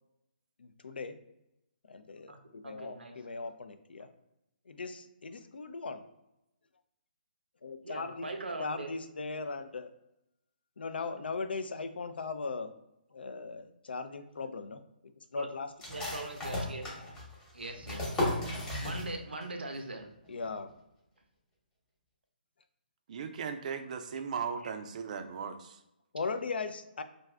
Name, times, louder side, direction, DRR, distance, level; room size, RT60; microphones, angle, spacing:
voice 1, 0.6-1.1 1.9-4.1 4.7-6.0 7.6-8.3 8.6-9.9 10.8-12.7 13.1-14.8 15.3-15.7 20.3-20.7 26.1-27.0, left 4 dB, 80° left, 9 dB, 0.4 m, -38 dB
voice 2, 2.6-3.3 7.8-8.9 15.4-15.5 15.9-16.9 17.5-18.1 18.8-20.1, right 2 dB, 90° right, 5 dB, 0.6 m, -41 dB
sound 1, 15.8-19.4 19.7-19.8 20.2-20.7, left 1 dB, 10° left, 0.9 m, -35 dB
voice 3, 23.1-25.8, right 6 dB, 45° right, 8 dB, 0.4 m, -37 dB
2.6 x 2.3 x 3.2 m, 0.89 s
hypercardioid pair, 145°, 5 cm